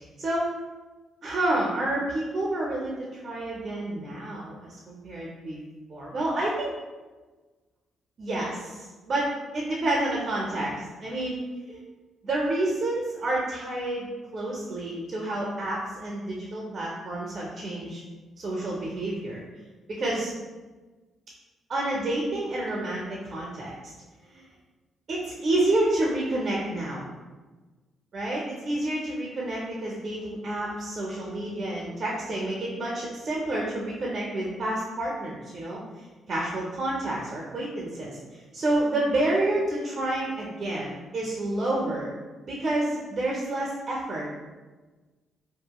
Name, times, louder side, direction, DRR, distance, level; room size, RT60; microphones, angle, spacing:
voice 1, 0.2-0.5 1.2-5.6 5.9-6.7 8.2-11.4 11.7-11.8 12.2-18.0 18.4-19.4 19.9-20.3 21.7-23.9 24.3-24.4 25.1-27.1 28.1-35.8 36.3-42.1 42.4-44.3, right 1 dB, 45° right, -4 dB, 0.5 m, -29 dB
2.8 x 2.4 x 2.2 m, 1.3 s
cardioid pair, 90°, 0 cm